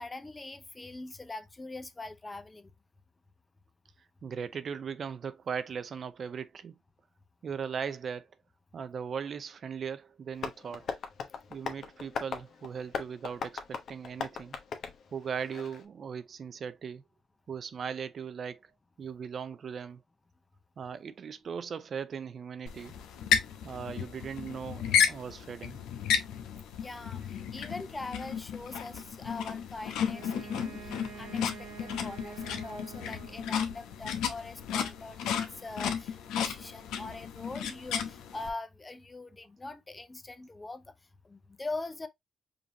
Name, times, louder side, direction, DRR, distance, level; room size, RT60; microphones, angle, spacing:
voice 1, 0.0-2.7 26.8-40.9 41.2-42.1, left 2 dB, 20° left, 0.6 m, -42 dB
voice 2, 4.2-6.8 7.4-8.3 8.7-11.0 11.5-14.6 15.1-17.0 17.5-18.7 19.0-20.0 20.8-23.0 23.6-25.8, right 6 dB, 50° right, 0.4 m, -38 dB
Tap, 10.4-15.8, left 6 dB, 60° left, 0.9 m, -39 dB
sound 1, 22.7-38.5, left 8 dB, 90° left, 0.8 m, -33 dB
Wind instrument woodwind instrument, 30.1-33.8, right 7 dB, 85° right, 1.5 m, -47 dB
5.1 x 2.7 x 2.7 m
cardioid pair, 90°, 0 cm